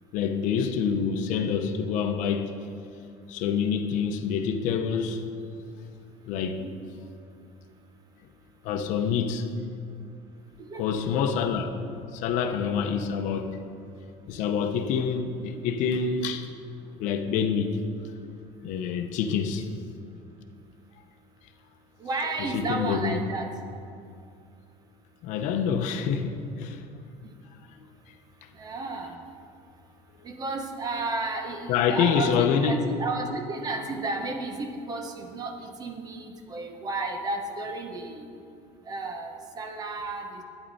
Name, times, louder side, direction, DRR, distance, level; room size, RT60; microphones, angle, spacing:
voice 1, 0.1-2.5 3.3-5.2 6.3-6.6 8.6-9.5 10.8-11.7 12.1-13.6 14.3-16.5 17.0-17.8 18.6-19.7 22.5-23.2 25.2-26.8 31.7-32.8, left 6 dB, 65° left, 0.8 m, -26 dB
voice 2, 6.3-6.7 10.6-11.2 19.3-19.4 22.0-23.5 28.6-29.1 30.2-38.3 38.9-40.4, right 3 dB, 30° right, 0.9 m, -33 dB
12.0 x 9.1 x 4.1 m
cardioid pair, 160°, 14 cm